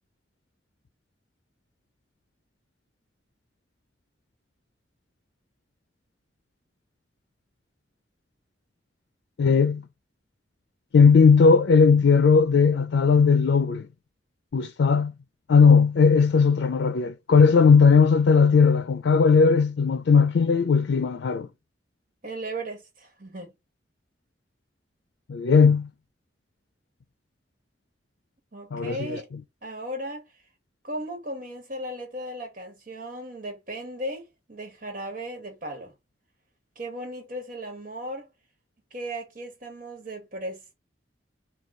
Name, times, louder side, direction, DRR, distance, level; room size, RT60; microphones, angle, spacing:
voice 1, 9.4-9.8 10.9-13.9 14.5-15.1 15.5-21.5 25.3-25.9 28.7-29.2, left 5 dB, 85° left, 0.4 m, -18 dB
voice 2, 22.2-23.5 28.5-29.3 29.6-30.2 30.8-35.9 36.7-38.3 38.9-40.7, right 1 dB, 45° right, 1.3 m, -36 dB
3.7 x 2.3 x 4.0 m
head